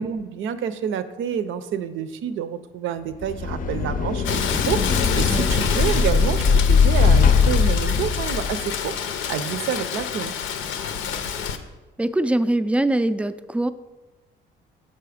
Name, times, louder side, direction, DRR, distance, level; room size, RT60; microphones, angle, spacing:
voice 1, 0.0-8.9 9.3-10.3, right 8 dB, 80° right, 11 dB, 0.6 m, -28 dB
sound 1, 3.1-8.8, left 5 dB, 45° left, 0.6 m, -20 dB
Rain, 4.2-11.6, left 7 dB, 85° left, 0.6 m, -28 dB
voice 2, 12.0-13.7, right 1 dB, 5° right, 12 dB, 0.3 m, -22 dB
6.9 x 5.5 x 4.9 m, 1.1 s
cardioid pair, 90°, 20 cm